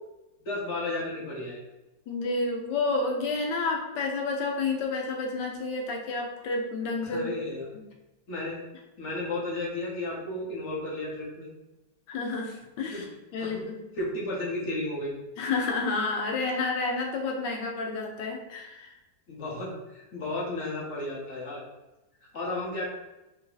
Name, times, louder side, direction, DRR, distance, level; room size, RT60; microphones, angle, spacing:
voice 1, 0.4-1.6 7.0-7.7 8.3-8.6 9.0-11.5 12.9-13.0 13.4-13.6 14.0-15.1 19.3-21.6 22.3-22.8, left 2 dB, 50° left, -5 dB, 1.0 m, -33 dB
voice 2, 2.1-7.4 7.7-7.8 12.1-13.1 13.3-13.8 15.4-18.9, left 3 dB, 80° left, 1 dB, 1.3 m, -30 dB
3.3 x 2.7 x 3.8 m, 1.0 s
omnidirectional pair, 1.9 m